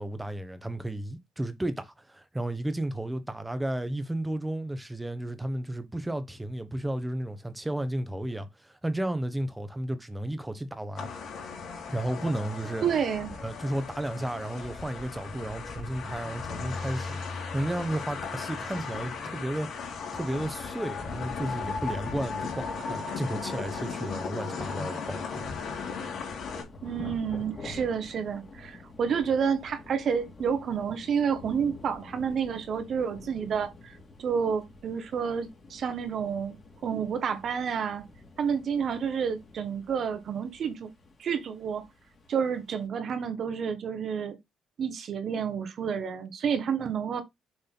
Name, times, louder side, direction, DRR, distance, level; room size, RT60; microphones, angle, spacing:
voice 1, 0.0-11.1 11.9-12.8 13.4-25.6, right 1 dB, 10° right, 1.1 m, -33 dB
sound 1, 11.0-26.6, left 5 dB, 65° left, 3.1 m, -36 dB
voice 2, 12.8-13.3 26.8-36.6 36.8-38.0 38.4-40.9 41.2-41.8 42.3-44.4 44.8-47.2, right 7 dB, 60° right, 1.5 m, -29 dB
Thunder / Rain, 26.6-42.9, left 3 dB, 40° left, 2.5 m, -48 dB
6.8 x 4.0 x 3.9 m
cardioid pair, 90°, 0 cm